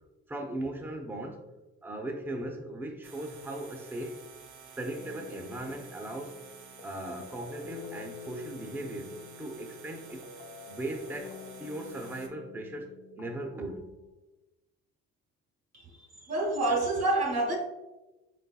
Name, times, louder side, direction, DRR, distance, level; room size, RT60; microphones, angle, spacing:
voice 1, 0.3-1.5 1.8-4.2 4.8-6.4 6.8-10.2 10.7-13.8, right 1 dB, 5° right, 2 dB, 0.6 m, -38 dB
sound 1, 3.0-12.3, right 6 dB, 80° right, 0.7 m, -51 dB
music box, 5.0-14.1, left 6 dB, 65° left, 0.5 m, -49 dB
voice 2, 15.7-17.6, right 2 dB, 55° right, 1 dB, 1.0 m, -28 dB
4.4 x 4.2 x 2.3 m, 1.0 s
cardioid pair, 90°, 30 cm